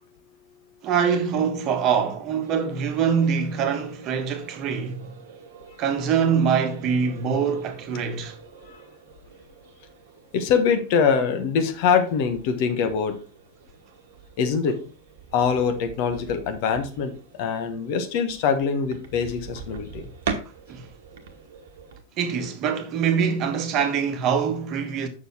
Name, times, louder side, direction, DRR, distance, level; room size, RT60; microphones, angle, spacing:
voice 1, 0.8-5.0 5.8-8.4 20.7-20.9 22.2-25.1, right 7 dB, 35° right, 1.3 m, -24 dB
sound 1, 2.4-22.0, right 6 dB, 55° right, 1.2 m, -42 dB
voice 2, 10.3-13.2 14.4-14.8 15.3-17.1 17.4-20.1, left 6 dB, 45° left, 1.3 m, -23 dB
6.9 x 6.3 x 4.5 m
figure-of-eight pair, 90°, 0 cm